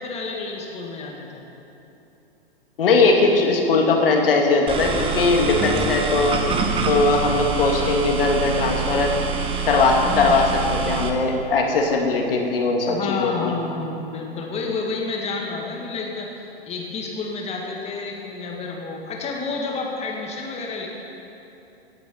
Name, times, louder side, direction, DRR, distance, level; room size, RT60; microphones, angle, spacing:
voice 1, 0.0-1.4 10.1-11.1 12.9-16.3 16.7-20.9, left 4 dB, 20° left, 0 dB, 2.1 m, -30 dB
voice 2, 2.8-6.5 6.9-9.1 9.7-13.5, left 3 dB, 65° left, 1 dB, 2.1 m, -20 dB
sound 1, 4.7-11.1, right 5 dB, 15° right, 1.1 m, -25 dB
16.5 x 8.2 x 5.6 m, 2.8 s
figure-of-eight pair, 110°, 31 cm